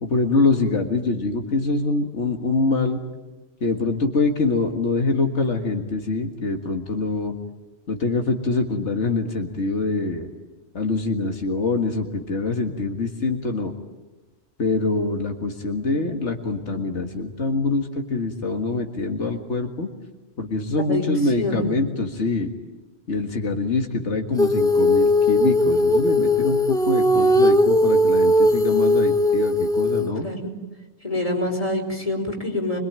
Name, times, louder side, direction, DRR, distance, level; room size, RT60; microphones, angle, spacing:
voice 1, 0.0-3.0 3.6-7.3 7.9-10.3 10.7-13.7 14.6-19.9 20.4-22.5 23.1-30.3, left 3 dB, 85° left, 2 dB, 2.1 m, -24 dB
voice 2, 21.4-21.7 30.2-30.5 31.0-32.8, left 2 dB, 30° left, 1 dB, 5.0 m, -26 dB
Female singing, 24.4-30.1, left 1 dB, 5° left, 1.1 m, -18 dB
25.5 x 22.5 x 8.9 m, 1.1 s
omnidirectional pair, 1.2 m